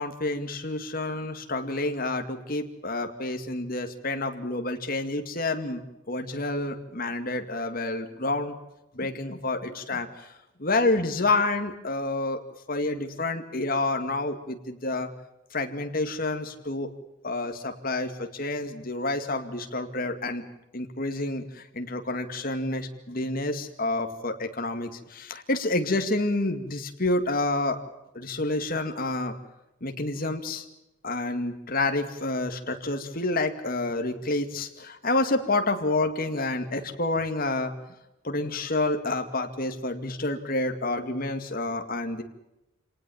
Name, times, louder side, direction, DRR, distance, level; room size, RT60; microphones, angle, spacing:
voice 1, 0.0-5.8 6.1-8.5 8.9-10.3 10.6-12.4 12.7-15.1 15.5-16.9 17.2-20.4 20.7-27.8 28.1-29.4 29.8-30.7 31.0-37.7 38.2-42.2, left 2 dB, 45° left, 6 dB, 2.2 m, -29 dB
27.0 x 19.0 x 7.2 m, 0.92 s
head